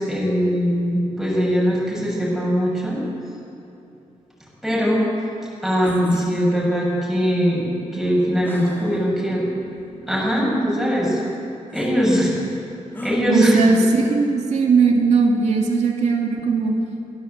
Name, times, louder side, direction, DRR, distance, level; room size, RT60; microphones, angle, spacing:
voice 1, 0.0-3.0 4.6-5.0 5.6-9.5 9.9-11.2 11.7-12.3 13.0-13.6, equal, ahead, -6 dB, 6.8 m, -21 dB
sound 1, 5.8-6.3 8.4-9.1 9.8-9.9 11.7-11.9 12.9-13.2, left 1 dB, 15° left, 2.7 m, -34 dB
voice 2, 13.3-16.7, right 4 dB, 70° right, 1 dB, 2.5 m, -18 dB
22.5 x 16.5 x 8.1 m, 2.8 s
wide cardioid pair, 170°, 12 cm